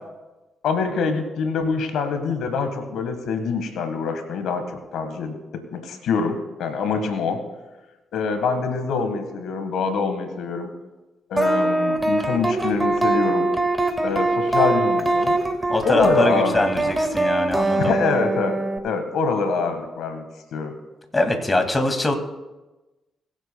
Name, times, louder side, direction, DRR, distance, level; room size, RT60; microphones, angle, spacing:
voice 1, 0.6-4.6 4.9-7.4 8.1-10.7 11.3-13.5 14.0-15.4 15.8-16.9 17.8-20.2 20.5-20.7, left 5 dB, 75° left, 7 dB, 1.5 m, -25 dB
sound 1, 11.4-18.8, right 2 dB, 20° right, 1.8 m, -22 dB
voice 2, 15.7-17.9 21.1-22.1, left 2 dB, 25° left, 5 dB, 2.2 m, -22 dB
23.0 x 8.1 x 2.3 m, 1.1 s
hypercardioid pair, 45°, 0 cm